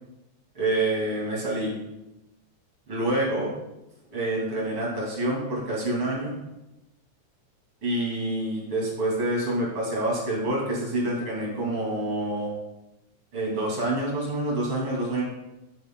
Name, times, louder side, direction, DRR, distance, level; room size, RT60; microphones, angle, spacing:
voice 1, 0.5-1.7 2.9-3.5 4.1-6.3 7.8-12.5 13.3-15.2, right 1 dB, 45° right, -4 dB, 3.2 m, -27 dB
11.0 x 7.6 x 2.3 m, 0.96 s
omnidirectional pair, 3.5 m